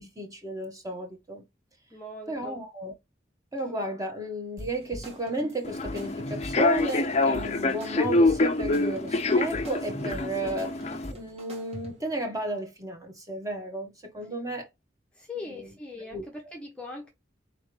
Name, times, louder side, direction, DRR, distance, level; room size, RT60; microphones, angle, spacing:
voice 1, 0.0-1.4 2.3-2.9 3.5-10.8 11.1-14.7 15.4-15.7 16.1-16.2, right 1 dB, 20° right, 1.4 m, -33 dB
voice 2, 1.9-2.6 15.1-17.1, left 2 dB, 5° left, 0.9 m, -40 dB
sound 1, 4.6-12.2, right 1 dB, 35° right, 1.7 m, -42 dB
Human voice / Subway metro underground, 5.6-11.1, left 2 dB, 35° left, 0.6 m, -26 dB
4.6 x 3.5 x 3.2 m
head